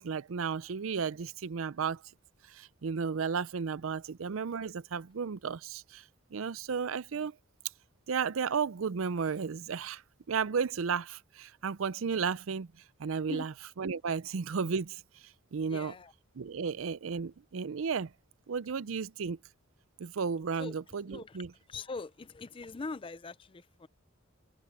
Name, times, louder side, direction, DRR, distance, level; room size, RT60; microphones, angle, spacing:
voice 1, 0.0-2.0 2.5-6.0 6.3-7.3 8.1-10.0 10.3-12.7 13.0-13.5 13.8-15.0 15.5-15.9 16.4-18.1 18.5-19.4 20.0-21.5, right 6 dB, 75° right, 0.5 m, -33 dB
voice 2, 15.7-16.1 20.6-20.7 21.1-21.4 21.7-23.9, left 3 dB, 25° left, 0.5 m, -42 dB
head